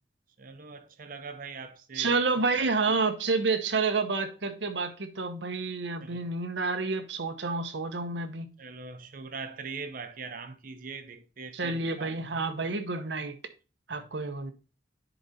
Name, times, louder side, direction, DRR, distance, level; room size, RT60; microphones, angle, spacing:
voice 1, 0.4-2.1 6.0-6.2 8.6-12.3 13.9-14.1, right 4 dB, 50° right, 0.8 m, -42 dB
voice 2, 1.9-8.5 11.5-13.4 13.9-14.5, right 3 dB, 85° right, 0.9 m, -29 dB
10.0 x 3.9 x 4.1 m
head